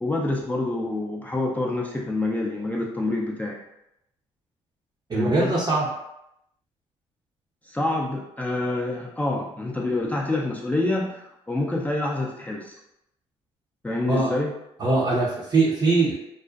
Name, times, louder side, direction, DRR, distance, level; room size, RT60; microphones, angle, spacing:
voice 1, 0.0-3.6 5.1-5.5 7.7-12.7 13.8-14.5, left 2 dB, 10° left, -3 dB, 0.4 m, -27 dB
voice 2, 5.1-5.9 14.1-14.4 14.8-16.1, right 3 dB, 30° right, -6 dB, 0.6 m, -22 dB
2.4 x 2.1 x 2.4 m, 0.81 s
supercardioid pair, 65°, 14 cm